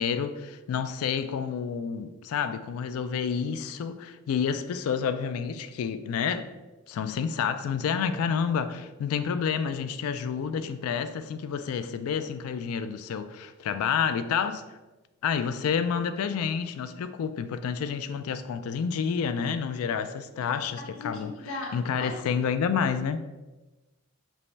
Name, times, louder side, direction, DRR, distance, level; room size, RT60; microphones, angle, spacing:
voice 1, 0.0-6.5 6.9-14.8 15.2-21.3 21.7-23.2, left 7 dB, 90° left, 0.3 m, -29 dB
voice 2, 20.9-22.2, left 3 dB, 70° left, 0.9 m, -37 dB
5.3 x 2.2 x 3.2 m
head